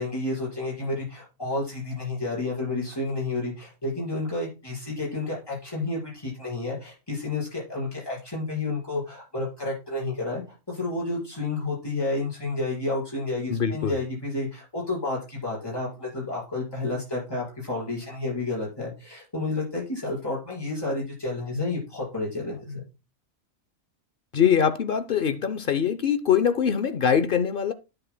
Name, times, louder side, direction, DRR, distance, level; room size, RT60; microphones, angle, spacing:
voice 1, 0.0-22.8, left 2 dB, 15° left, 5.1 m, -30 dB
voice 2, 13.5-14.0 24.3-27.7, left 8 dB, 55° left, 0.6 m, -23 dB
9.8 x 9.1 x 2.2 m
omnidirectional pair, 1.4 m